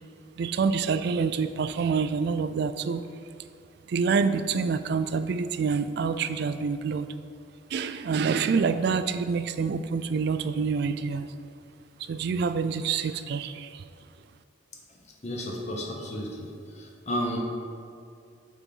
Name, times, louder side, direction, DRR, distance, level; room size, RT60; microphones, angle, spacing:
voice 1, 0.4-3.0 3.9-7.1 7.7-11.3 12.1-13.7, right 5 dB, 60° right, 12 dB, 0.3 m, -27 dB
voice 2, 15.2-17.4, equal, 35° left, 0 dB, 0.8 m, -33 dB
7.2 x 4.1 x 5.4 m, 2.5 s
head